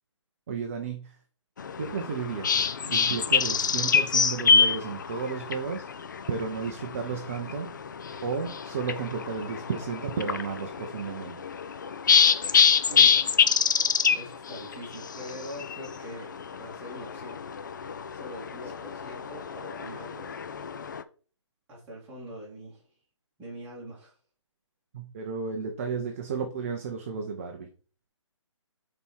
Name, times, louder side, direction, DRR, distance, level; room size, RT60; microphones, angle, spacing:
voice 1, 0.5-1.2 1.8-5.8 6.3-7.7 8.2-11.4 24.9-27.7, right 5 dB, 25° right, 4 dB, 0.6 m, -33 dB
sound 1, 1.6-21.0, left 6 dB, 40° left, 0.4 m, -26 dB
voice 2, 12.9-13.3 14.1-16.3 16.5-17.4 18.1-20.4 21.7-22.8 23.4-24.1, equal, 10° right, -7 dB, 2.4 m, -43 dB
5.3 x 4.2 x 4.5 m, 0.39 s
hypercardioid pair, 165°, 16 cm